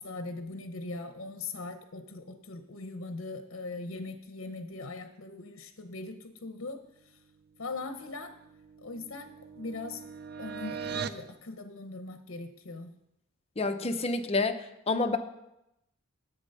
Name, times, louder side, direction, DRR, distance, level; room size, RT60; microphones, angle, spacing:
voice 1, 0.0-7.2 7.6-8.3 8.8-10.0 10.4-12.9, left 3 dB, 70° left, 8 dB, 0.8 m, -40 dB
sound 1, 8.1-11.3, right 6 dB, 50° right, 0.5 m, -40 dB
voice 2, 13.6-14.6 14.9-15.2, left 3 dB, 30° left, 7 dB, 0.7 m, -28 dB
10.0 x 8.3 x 5.5 m, 0.86 s
head